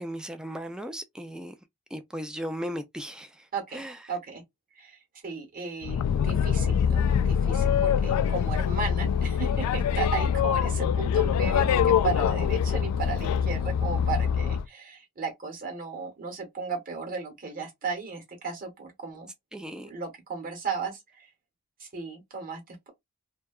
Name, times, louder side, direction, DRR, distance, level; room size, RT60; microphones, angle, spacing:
voice 1, 0.0-1.5 1.9-3.5 3.7-4.0 19.5-19.9, equal, 5° right, 0.3 m, -36 dB
voice 2, 3.5-3.8 4.1-4.4 4.7-19.3 19.8-21.3 21.8-22.9, right 5 dB, 40° right, 1.0 m, -35 dB
Boat Water vehicle, 5.8-14.6, left 7 dB, 80° left, 0.3 m, -24 dB
2.7 x 2.2 x 2.2 m
head